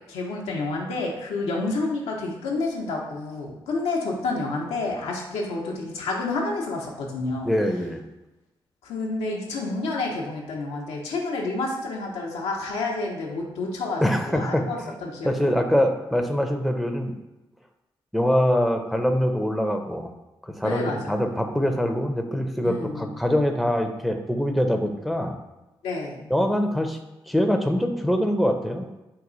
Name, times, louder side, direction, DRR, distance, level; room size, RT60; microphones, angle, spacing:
voice 1, 0.1-7.5 8.8-15.5 20.6-21.2 21.7-21.8 22.6-23.1 25.8-26.2, left 3 dB, 85° left, -1 dB, 0.7 m, -29 dB
voice 2, 7.4-8.0 14.0-14.9 15.2-17.1 18.1-20.1 20.4-25.4 26.3-27.0 27.3-28.9, equal, ahead, 4 dB, 0.6 m, -24 dB
4.7 x 2.3 x 3.9 m, 1.0 s
supercardioid pair, 45°, 10 cm